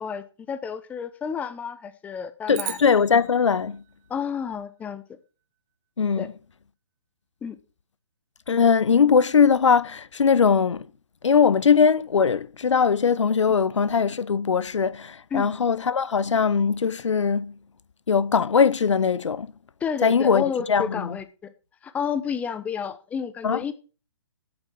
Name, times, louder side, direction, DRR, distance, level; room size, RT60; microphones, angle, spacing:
voice 1, 0.0-2.8 4.1-5.0 6.2-6.3 7.4-7.6 15.3-15.5 19.8-21.5 21.8-23.7, left 7 dB, 10° left, 0.8 m, -30 dB
voice 2, 2.5-3.8 6.0-6.3 8.5-10.8 11.2-17.5 18.1-19.5 20.0-21.2 23.4-23.6, left 6 dB, 75° left, 0.7 m, -20 dB
sound 1, 2.5-5.0, right 18 dB, 20° right, 0.6 m, -39 dB
8.9 x 8.0 x 7.4 m
figure-of-eight pair, 135°, 16 cm